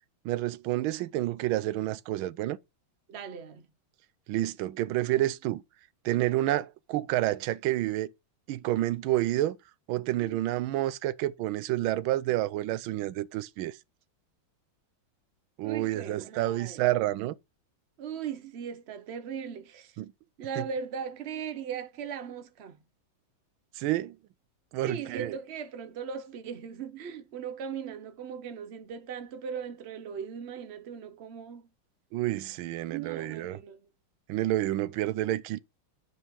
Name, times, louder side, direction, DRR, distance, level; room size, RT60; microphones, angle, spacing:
voice 1, 0.2-2.6 4.3-5.6 6.0-8.1 8.5-9.6 9.9-13.8 15.6-17.3 20.0-20.1 20.6-20.7 23.8-24.2 24.7-25.4 32.1-33.6 34.3-35.6, right 15 dB, 85° right, 1.4 m, -29 dB
voice 2, 3.1-3.7 10.2-10.4 15.6-16.8 18.0-20.0 20.4-22.8 24.9-31.7 32.9-33.8, right 7 dB, 65° right, 0.6 m, -38 dB
9.9 x 5.3 x 3.6 m
omnidirectional pair, 2.2 m